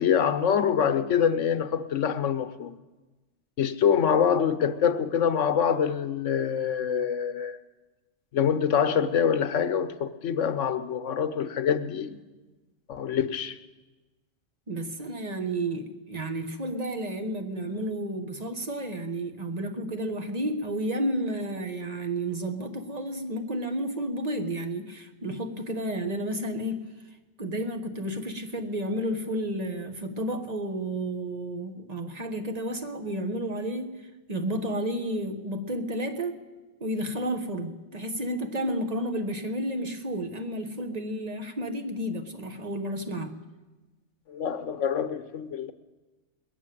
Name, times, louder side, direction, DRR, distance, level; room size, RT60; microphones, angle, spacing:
voice 1, 0.0-2.7 3.6-7.6 8.3-12.2 12.9-13.6 44.3-45.7, left 7 dB, 80° left, 10 dB, 1.2 m, -25 dB
voice 2, 14.7-26.9 27.4-34.0 34.3-36.5 36.8-43.4, right 1 dB, 35° right, 6 dB, 1.2 m, -31 dB
20.5 x 7.2 x 9.1 m, 1.2 s
omnidirectional pair, 1.2 m